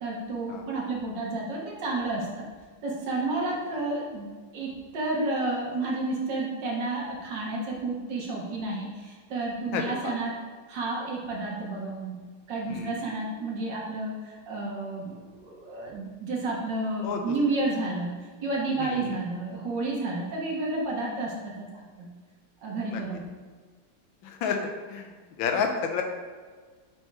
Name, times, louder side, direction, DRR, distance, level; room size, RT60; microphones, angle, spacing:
voice 1, 0.0-2.4 2.8-10.4 10.7-12.2 12.5-21.7 22.0-22.1 22.6-23.3, right 2 dB, 70° right, -3 dB, 2.0 m, -31 dB
voice 2, 9.7-10.1 12.7-13.0 17.0-17.2 18.8-19.2 22.9-23.0 24.2-25.1 25.4-26.0, left 6 dB, 90° left, 4 dB, 1.6 m, -30 dB
6.9 x 3.6 x 4.7 m, 1.5 s
omnidirectional pair, 2.0 m